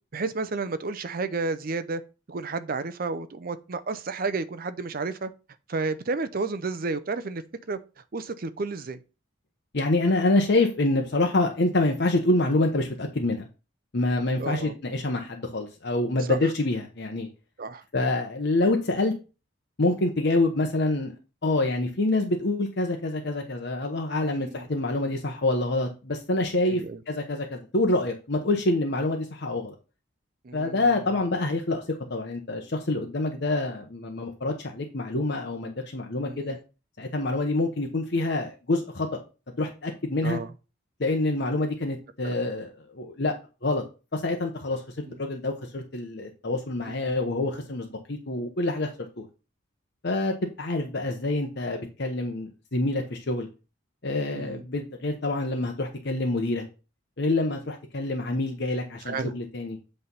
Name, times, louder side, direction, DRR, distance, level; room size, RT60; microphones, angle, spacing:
voice 1, 0.1-2.0 2.3-5.3 5.7-7.4 7.7-7.8 8.1-9.0 14.4-14.7 16.3-16.4 17.6-17.8 24.2-24.7 26.7-27.0 30.4-30.8 36.2-36.6 40.2-40.5 42.2-42.3 45.1-45.2 46.9-47.2 54.3-54.6 59.1-59.3, right 3 dB, 45° right, 0.5 m, -31 dB
voice 2, 9.7-13.5 13.9-17.3 17.9-19.1 19.8-21.1 21.4-29.7 30.5-31.8 32.1-36.6 37.0-39.2 39.6-40.4 41.0-43.3 43.6-43.8 44.1-44.8 45.2-48.9 49.2-49.3 50.0-53.5 54.0-56.6 57.2-59.8, left 2 dB, 55° left, 0.9 m, -26 dB
8.2 x 3.4 x 5.5 m
head